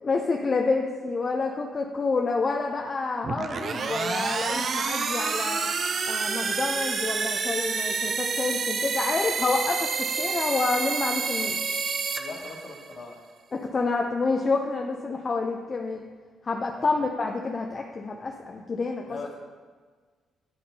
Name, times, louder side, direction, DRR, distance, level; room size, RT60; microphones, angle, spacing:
voice 1, 0.0-5.7 6.1-11.6 13.5-16.1 16.4-19.2, left 3 dB, 35° left, 2 dB, 0.4 m, -28 dB
sound 1, 3.2-13.0, right 5 dB, 50° right, 0.4 m, -28 dB
voice 2, 12.2-13.2 16.7-17.0 19.0-19.4, left 3 dB, 60° left, -2 dB, 1.4 m, -40 dB
10.0 x 4.2 x 2.7 m, 1.5 s
cardioid pair, 90°, 0 cm